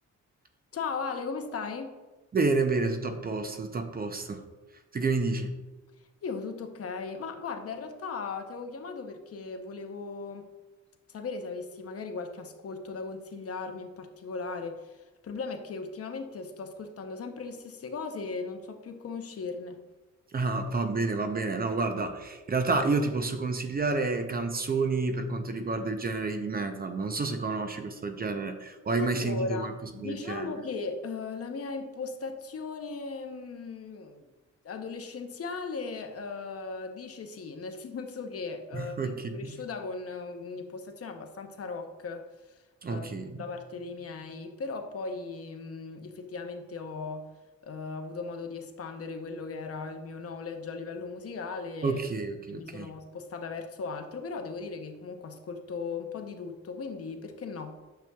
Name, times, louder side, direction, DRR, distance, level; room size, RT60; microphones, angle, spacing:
voice 1, 0.7-1.9 6.2-10.5 11.1-19.8 29.0-34.2 34.6-42.6 42.9-43.1 43.4-47.3 47.6-52.0 52.5-57.8, left 4 dB, 50° left, 5 dB, 0.7 m, -37 dB
voice 2, 2.3-4.4 4.9-5.5 20.3-29.7 30.0-30.5 38.7-39.5 42.8-43.4 51.8-52.9, right 3 dB, 30° right, 7 dB, 0.5 m, -29 dB
9.1 x 6.6 x 2.3 m, 1.2 s
wide cardioid pair, 150°, 30 cm